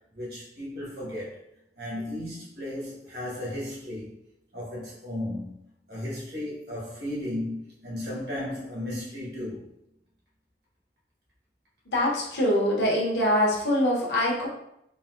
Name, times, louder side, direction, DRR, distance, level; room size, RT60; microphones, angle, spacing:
voice 1, 0.1-1.4 1.8-4.2 4.5-5.6 5.9-9.7, left 1 dB, 65° right, -6 dB, 1.2 m, -35 dB
voice 2, 11.9-14.5, left 1 dB, 70° left, -3 dB, 0.9 m, -24 dB
3.9 x 2.2 x 2.5 m, 0.79 s
head